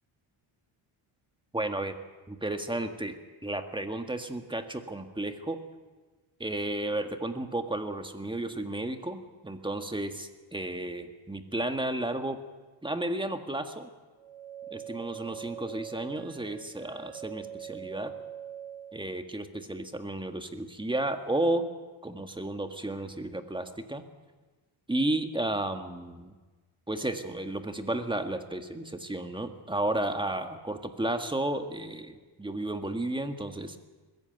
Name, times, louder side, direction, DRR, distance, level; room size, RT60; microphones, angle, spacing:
voice 1, 1.5-2.0 2.3-3.2 3.4-5.6 6.4-12.4 12.8-13.9 14.7-18.1 18.9-21.7 22.0-24.0 24.9-26.3 26.9-33.8, right 1 dB, 10° right, 7 dB, 1.7 m, -33 dB
sound 1, 14.2-19.1, right 9 dB, 85° right, 0.9 m, -43 dB
21.0 x 15.5 x 9.1 m, 1.3 s
cardioid pair, 105°, 49 cm